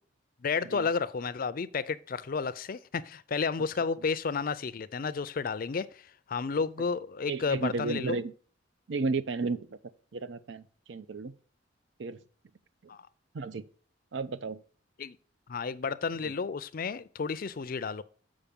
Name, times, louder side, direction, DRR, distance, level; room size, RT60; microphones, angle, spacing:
voice 1, 0.4-8.2 12.9-13.0 15.0-15.2 15.5-18.0, left 5 dB, 50° left, 0.4 m, -32 dB
voice 2, 7.3-8.3 8.9-9.8 10.1-10.6 10.9-11.3 12.0-12.2 13.3-13.6 14.1-14.6, right 3 dB, 75° right, 0.6 m, -33 dB
7.1 x 5.1 x 5.2 m
head